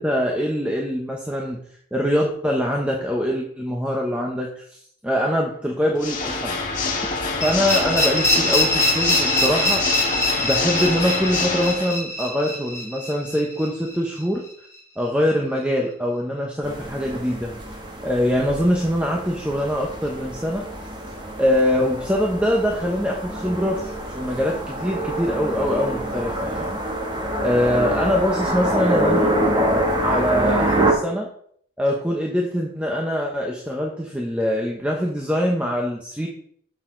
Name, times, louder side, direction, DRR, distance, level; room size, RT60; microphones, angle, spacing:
voice 1, 0.0-1.6 1.9-6.6 7.4-9.8 10.4-14.4 15.0-17.5 18.0-20.6 21.4-26.8 27.4-29.3 30.0-31.3 31.8-36.3, equal, 5° right, -1 dB, 1.0 m, -23 dB
Water / Mechanisms, 5.9-11.9, left 3 dB, 40° left, 1.9 m, -26 dB
sound 1, 7.4-14.2, left 1 dB, 15° left, 1.7 m, -23 dB
sound 2, 16.6-30.9, right 1 dB, 20° right, 1.3 m, -26 dB
11.0 x 6.6 x 3.9 m, 0.63 s
head